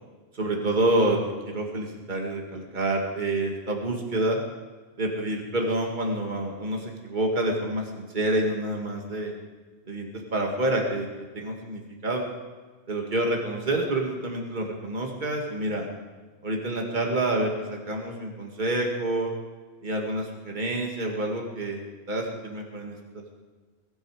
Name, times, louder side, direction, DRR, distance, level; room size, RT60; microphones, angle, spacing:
voice 1, 0.3-1.2 1.5-4.4 5.0-9.3 9.9-11.1 11.3-12.3 12.9-15.9 16.4-19.3 19.8-21.8 22.1-23.0, right 1 dB, 45° right, 1 dB, 2.1 m, -28 dB
21.5 x 11.5 x 4.9 m, 1.4 s
omnidirectional pair, 1.1 m